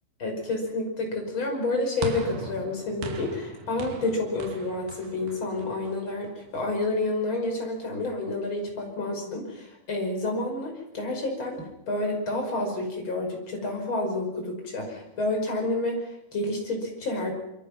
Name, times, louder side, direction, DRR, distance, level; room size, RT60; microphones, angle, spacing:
voice 1, 0.2-17.3, left 2 dB, 30° left, 2 dB, 6.1 m, -29 dB
sound 1, 2.0-6.4, right 3 dB, 75° right, 4.1 m, -38 dB
27.0 x 24.0 x 6.0 m, 0.85 s
omnidirectional pair, 4.3 m